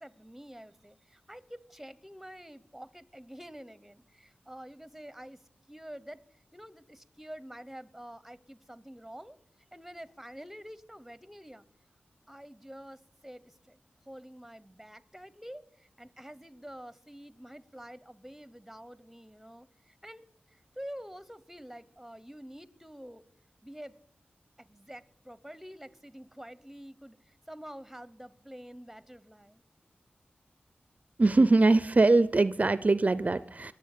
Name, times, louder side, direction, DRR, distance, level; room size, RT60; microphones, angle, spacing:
voice 1, 0.0-5.4 5.7-6.2 6.5-9.4 9.7-11.6 12.3-13.8 14.1-19.7 20.0-20.3 20.8-23.2 23.6-24.0 24.6-27.2 27.5-29.6, equal, 5° right, 0.9 m, -47 dB
voice 2, 31.2-33.7, right 3 dB, 40° right, 0.5 m, -22 dB
21.5 x 7.7 x 6.6 m
cardioid pair, 50°, 4 cm